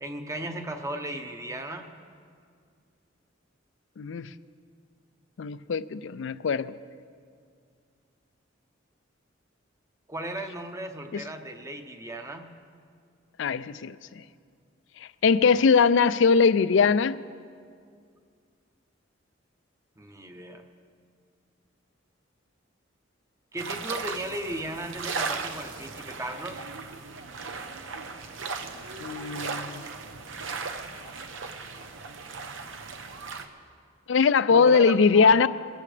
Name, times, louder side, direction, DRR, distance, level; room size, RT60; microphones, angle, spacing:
voice 1, 0.0-1.9 10.1-12.5 20.0-20.6 23.5-26.6 34.5-35.5, right 1 dB, 15° right, 6 dB, 0.9 m, -36 dB
voice 2, 4.0-4.3 5.4-6.7 11.1-11.2 13.4-14.0 15.2-17.2 29.0-29.8 34.1-35.5, left 5 dB, 65° left, 15 dB, 0.4 m, -21 dB
sound 1, 23.6-33.5, right 4 dB, 75° right, 0.9 m, -37 dB
22.5 x 14.5 x 3.3 m, 2.2 s
head